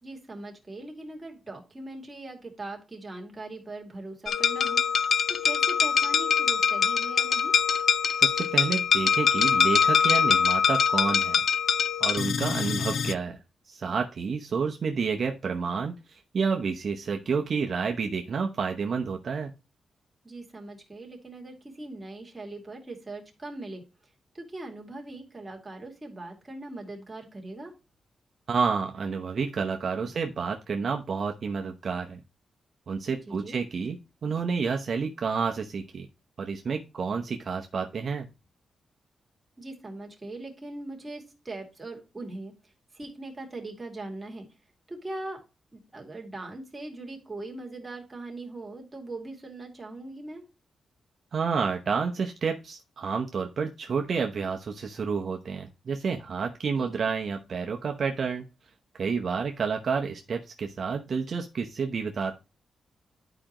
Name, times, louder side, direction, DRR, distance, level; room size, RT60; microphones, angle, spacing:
voice 1, 0.0-7.5 12.6-13.0 20.2-23.8 24.3-27.7 33.3-33.6 39.6-44.5 44.9-45.4 45.7-50.5 56.7-57.1, right 2 dB, 15° right, 1 dB, 2.5 m, -41 dB
sound 1, 4.3-13.1, left 7 dB, 60° left, 0.5 m, -23 dB
voice 2, 8.2-11.4 12.0-13.4 13.6-19.5 28.5-32.2 32.9-34.0 34.2-36.1 36.4-38.3 51.3-58.5 59.0-62.4, right 5 dB, 50° right, 3 dB, 0.9 m, -29 dB
11.5 x 5.0 x 2.9 m, 0.29 s
wide cardioid pair, 135°, 0 cm